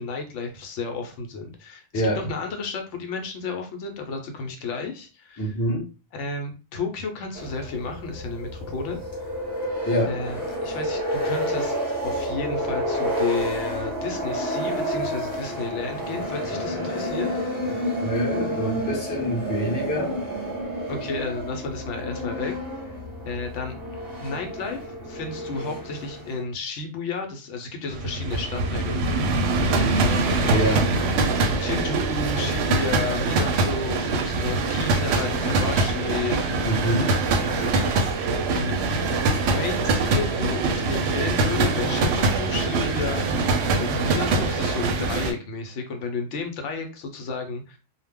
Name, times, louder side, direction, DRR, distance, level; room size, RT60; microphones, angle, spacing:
voice 1, 0.0-5.6 6.1-9.0 10.0-11.7 12.0-17.3 20.9-22.5 23.2-23.8 24.2-30.4 31.6-36.4 37.4-38.0 38.5-38.7 39.5-43.2 43.8-47.8, left 4 dB, 70° left, 4 dB, 0.9 m, -32 dB
voice 2, 5.4-5.8 9.8-10.1 18.0-20.3 29.6-29.9 30.2-30.9 36.6-37.1, equal, 25° left, 0 dB, 0.4 m, -26 dB
sound 1, 7.3-26.4, equal, 20° right, 0.8 m, -30 dB
sound 2, 27.9-45.3, right 3 dB, 65° right, 0.7 m, -23 dB
2.3 x 2.0 x 3.5 m, 0.32 s
omnidirectional pair, 1.3 m